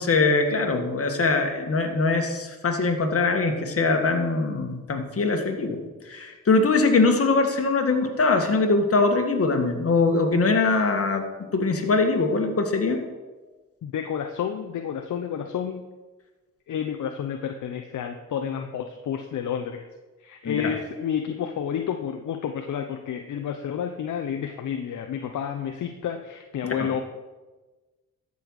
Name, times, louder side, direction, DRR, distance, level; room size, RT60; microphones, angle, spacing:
voice 1, 0.0-5.8 6.1-11.2 11.5-13.0 20.4-20.7 26.6-26.9, left 3 dB, 45° left, 4 dB, 1.8 m, -22 dB
voice 2, 13.8-15.8 16.7-19.9 20.2-27.0, left 8 dB, 60° left, 5 dB, 0.8 m, -30 dB
12.5 x 5.5 x 6.4 m, 1.2 s
cardioid pair, 70°, 33 cm